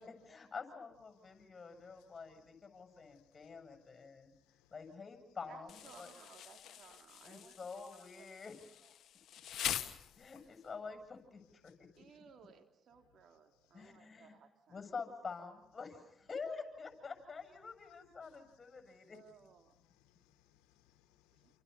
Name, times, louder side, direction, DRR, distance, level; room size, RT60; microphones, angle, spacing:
voice 1, 0.0-4.3 4.7-6.1 7.2-8.6 10.2-11.9 13.7-14.4 14.7-19.2, left 5 dB, 40° left, 7.8 m, -47 dB
voice 2, 3.0-3.8 4.5-4.7 9.4-10.3 11.6-11.7 13.8-13.9 18.2-18.4 19.8-21.6, left 12 dB, 85° left, 1.6 m, -72 dB
voice 3, 5.5-7.6 8.0-8.3 8.8-8.9 12.0-14.8 19.1-19.7 21.3-21.6, right 7 dB, 65° right, 3.8 m, -60 dB
Insect, 5.7-10.7, left 10 dB, 70° left, 1.4 m, -44 dB
29.0 x 29.0 x 5.7 m
supercardioid pair, 55°, 0 cm